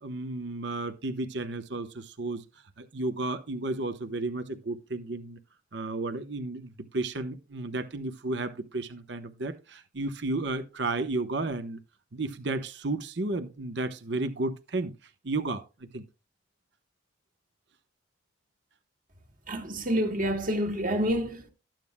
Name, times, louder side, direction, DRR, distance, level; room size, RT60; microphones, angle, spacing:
voice 1, 0.0-2.4 2.8-5.4 5.7-11.8 12.1-14.9 15.2-15.6 15.9-16.0, right 2 dB, 65° right, 0.9 m, -33 dB
voice 2, 19.5-21.5, equal, 45° right, 1.8 m, -28 dB
13.0 x 9.1 x 2.2 m
head